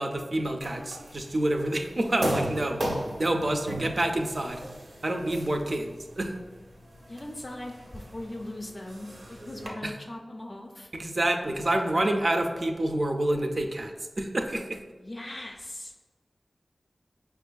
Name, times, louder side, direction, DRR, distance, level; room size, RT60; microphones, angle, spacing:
voice 1, 0.0-2.8 3.2-4.6 5.0-6.3 9.8-9.9 10.9-14.8, right 1 dB, 50° right, 4 dB, 0.4 m, -28 dB
sound 1, 0.6-9.7, right 1 dB, 85° right, 0.7 m, -37 dB
voice 2, 7.1-10.9 15.0-15.9, left 1 dB, 40° left, 1 dB, 0.4 m, -39 dB
5.2 x 2.4 x 2.2 m, 1.3 s
wide cardioid pair, 75°, 0 cm